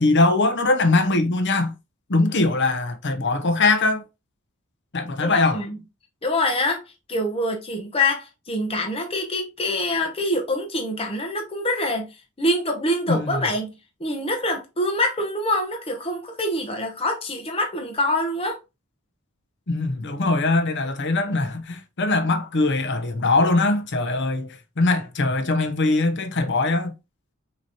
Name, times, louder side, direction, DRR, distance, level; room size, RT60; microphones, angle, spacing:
voice 1, 0.0-1.7 2.1-4.0 4.9-5.6 13.1-13.4 19.7-26.9, left 2 dB, 60° left, 0.8 m, -21 dB
voice 2, 5.2-5.8 6.2-6.8 7.1-13.7 14.0-18.6, left 1 dB, 30° left, 0.9 m, -25 dB
6.0 x 3.0 x 2.8 m
head